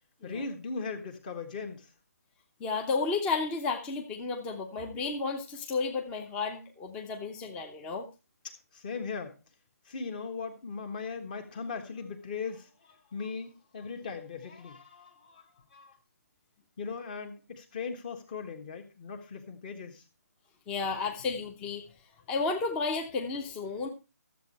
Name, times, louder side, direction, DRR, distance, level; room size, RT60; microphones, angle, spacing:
voice 1, 0.2-1.9 8.7-9.4 9.8-16.0 16.8-20.0, left 5 dB, 30° left, 6 dB, 1.4 m, -39 dB
voice 2, 2.6-8.1 20.7-21.8 22.3-23.9, left 4 dB, 10° left, 3 dB, 0.8 m, -32 dB
13.0 x 7.6 x 4.1 m, 0.30 s
figure-of-eight pair, 155°, 9 cm